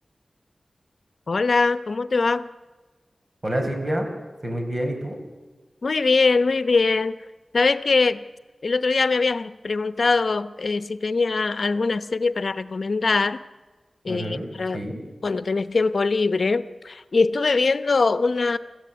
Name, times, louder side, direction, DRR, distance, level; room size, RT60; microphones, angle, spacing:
voice 1, 1.3-2.5 5.8-7.2 7.5-8.2 8.6-13.4 14.0-14.8 15.2-18.6, left 4 dB, 70° left, 13 dB, 0.8 m, -22 dB
voice 2, 3.4-4.1 4.4-5.2 14.1-15.0, right 1 dB, 40° right, 3 dB, 4.8 m, -28 dB
25.5 x 15.0 x 8.2 m, 1.3 s
wide cardioid pair, 70°, 0 cm